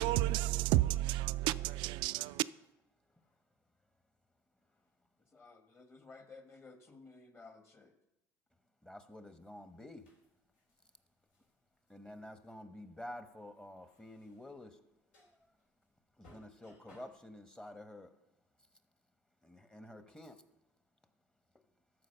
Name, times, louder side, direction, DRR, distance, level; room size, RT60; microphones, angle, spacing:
voice 1, 0.0-2.4, right 16 dB, 70° right, 0.3 m, -31 dB
voice 2, 5.3-7.9, left 3 dB, 30° left, 1.7 m, -55 dB
voice 3, 8.8-10.1 11.9-14.8 15.2-15.3 16.2-18.1 19.4-20.4, left 1 dB, 10° left, 1.0 m, -50 dB
sound 1, 9.2-17.4, equal, 75° left, 2.9 m, -66 dB
13.0 x 4.8 x 6.7 m
supercardioid pair, 80°, 8 cm